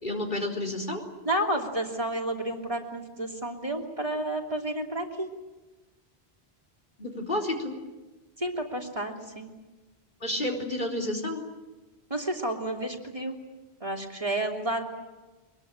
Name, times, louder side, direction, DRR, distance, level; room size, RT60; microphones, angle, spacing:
voice 1, 0.0-1.0 7.0-7.8 10.2-11.4, left 1 dB, 50° left, 2 dB, 4.3 m, -30 dB
voice 2, 1.2-5.3 8.4-9.5 12.1-13.4 13.8-14.8, right 1 dB, 30° right, 0 dB, 3.2 m, -31 dB
23.5 x 22.0 x 8.9 m, 1.2 s
omnidirectional pair, 1.1 m